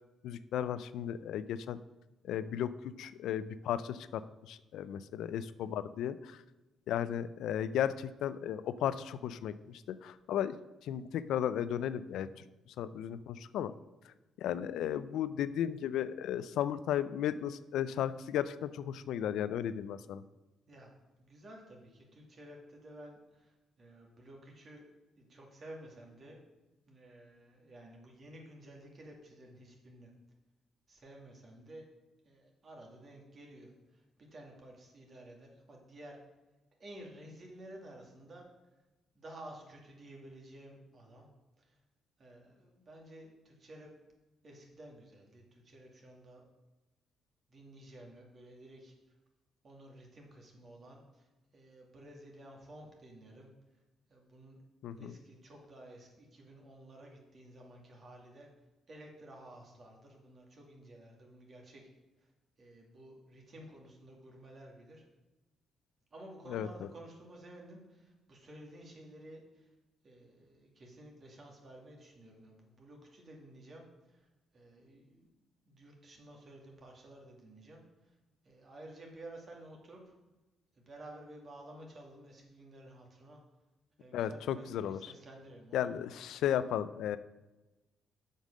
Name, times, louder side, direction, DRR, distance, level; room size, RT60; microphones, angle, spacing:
voice 1, 0.2-1.8 2.2-6.4 6.9-10.6 10.8-12.4 12.8-13.7 14.0-20.2 54.8-55.1 66.5-66.7 84.1-85.1 85.7-87.2, left 10 dB, 80° left, 14 dB, 0.4 m, -35 dB
voice 2, 20.7-24.8 25.2-26.4 26.8-30.1 30.9-31.9 32.2-36.2 36.8-38.4 39.1-41.3 41.6-41.8 42.2-43.9 44.4-46.5 47.5-49.0 49.6-53.5 54.1-54.6 55.0-58.5 58.9-61.9 62.2-62.3 62.6-65.1 66.1-69.7 70.0-75.3 75.7-78.1 78.4-80.2 80.7-83.4 84.0-86.0, right 1 dB, 45° right, 0 dB, 2.4 m, -53 dB
7.5 x 5.4 x 6.2 m, 1.1 s
cardioid pair, 90°, 0 cm